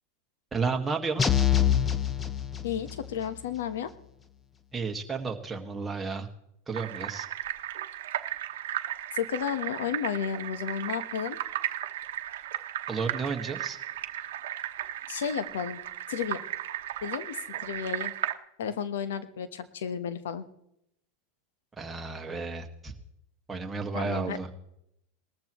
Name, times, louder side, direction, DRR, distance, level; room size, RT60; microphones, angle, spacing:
voice 1, 0.5-1.2 4.7-6.3 6.7-7.3 12.9-13.8 21.8-22.9 23.5-24.5, right 4 dB, 15° right, 2 dB, 1.7 m, -32 dB
sound 1, 1.2-3.1, left 9 dB, 20° left, 0.9 m, -25 dB
voice 2, 2.6-3.9 9.1-11.4 15.1-15.8 16.1-16.5 17.0-18.1 18.6-20.5 23.9-24.4, left 8 dB, 85° left, 12 dB, 1.1 m, -32 dB
sound 2, 6.7-18.3, right 12 dB, 80° right, 0.9 m, -35 dB
19.0 x 14.0 x 3.1 m, 0.80 s
supercardioid pair, 125°, 0 cm